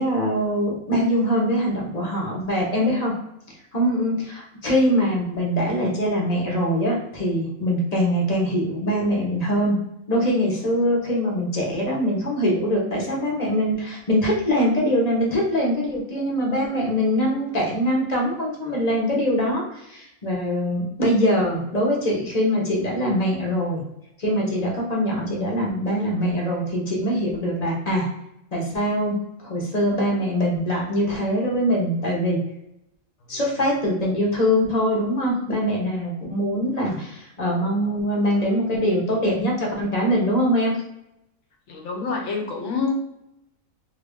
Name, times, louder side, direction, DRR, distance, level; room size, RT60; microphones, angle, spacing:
voice 1, 0.0-3.1 3.7-9.8 10.1-23.8 24.2-28.1 28.5-32.4 33.3-40.8, equal, 30° left, -2 dB, 0.9 m, -23 dB
voice 2, 41.7-42.9, left 4 dB, 60° left, 1 dB, 1.0 m, -28 dB
3.0 x 2.6 x 3.5 m, 0.84 s
omnidirectional pair, 1.5 m